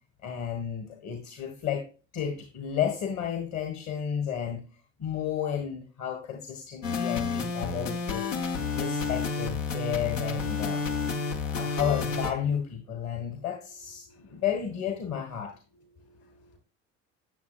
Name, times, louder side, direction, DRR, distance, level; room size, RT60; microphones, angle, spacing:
voice 1, 0.2-1.8 2.1-4.6 5.0-8.3 8.7-10.8 11.4-15.5, left 8 dB, 45° left, 1.6 m, -32 dB
sound 1, 6.8-12.3, left 4 dB, 80° left, 1.2 m, -30 dB
voice 2, 13.1-13.5 14.1-14.4 15.7-16.6, right 1 dB, 60° left, 4.6 m, -60 dB
9.3 x 7.1 x 2.4 m
figure-of-eight pair, 65°, 39 cm